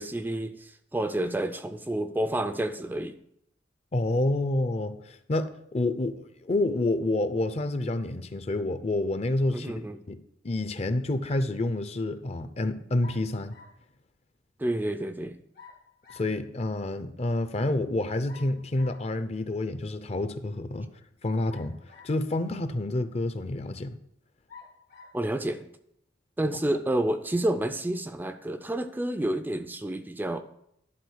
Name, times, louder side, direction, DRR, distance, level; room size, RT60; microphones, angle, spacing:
voice 1, 0.0-3.2 9.5-10.0 14.6-15.4 25.1-25.7 26.4-30.4, right 1 dB, 10° right, 0.4 m, -29 dB
voice 2, 3.9-9.7 10.1-10.2 10.4-13.6 16.1-20.9 21.2-21.7 22.0-24.0, left 2 dB, 35° left, 0.5 m, -28 dB
sound 1, 13.0-13.8 15.5-16.4 18.3-19.1 21.5-22.3 23.1-23.2 24.5-25.2, left 5 dB, 60° left, 1.5 m, -50 dB
11.0 x 4.0 x 6.4 m
head